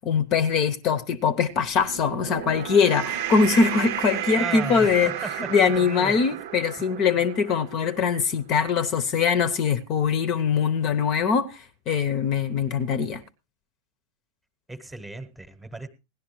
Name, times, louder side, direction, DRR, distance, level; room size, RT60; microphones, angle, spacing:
voice 1, 0.0-5.1 5.5-13.2, left 6 dB, 35° left, 0.8 m, -22 dB
sound 1, 1.6-8.2, right 11 dB, 50° right, 0.7 m, -33 dB
voice 2, 4.4-6.4 7.1-7.2 14.7-15.9, right 2 dB, 10° right, 1.1 m, -36 dB
17.0 x 11.5 x 3.1 m
figure-of-eight pair, 90°, 0 cm